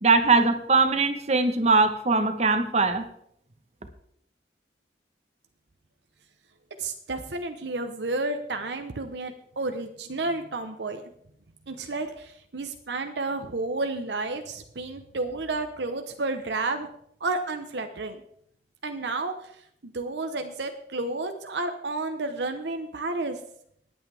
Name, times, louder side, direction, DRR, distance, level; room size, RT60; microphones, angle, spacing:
voice 1, 0.0-3.0, right 3 dB, 40° right, 8 dB, 1.2 m, -21 dB
voice 2, 6.8-11.0 11.7-16.9 17.2-18.2 18.8-19.5 19.8-23.4, right 2 dB, 80° right, 6 dB, 1.0 m, -31 dB
20.0 x 8.6 x 3.5 m, 0.70 s
head